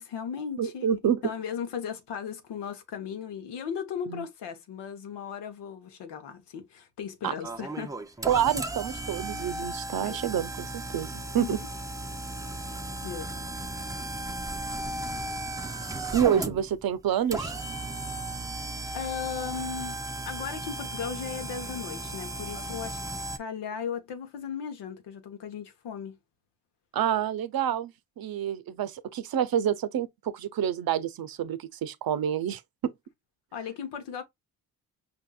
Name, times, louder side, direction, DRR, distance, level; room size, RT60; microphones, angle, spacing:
voice 1, 0.0-0.9 1.2-8.0 10.0-10.2 11.4-11.5 13.0-13.4 18.6-20.0 20.2-23.0 23.3-26.2 33.5-34.2, left 7 dB, 80° left, 1.1 m, -37 dB
voice 2, 0.6-1.2 4.1-4.2 7.2-7.3 8.3-11.6 16.1-17.5 26.9-32.9, right 9 dB, 60° right, 0.7 m, -28 dB
sound 1, 7.4-23.4, right 2 dB, 10° right, 0.6 m, -35 dB
5.1 x 2.7 x 2.3 m
supercardioid pair, 55°, 41 cm